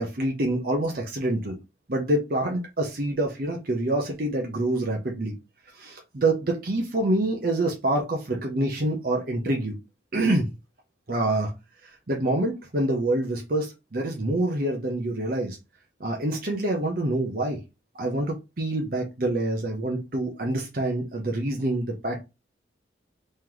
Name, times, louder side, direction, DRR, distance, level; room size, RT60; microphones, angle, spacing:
voice 1, 0.0-1.6 1.9-5.3 5.7-9.8 10.1-10.5 11.1-11.5 11.8-15.6 16.0-17.6 18.0-22.2, right 1 dB, 50° right, 0.7 m, -26 dB
3.2 x 2.9 x 3.8 m
head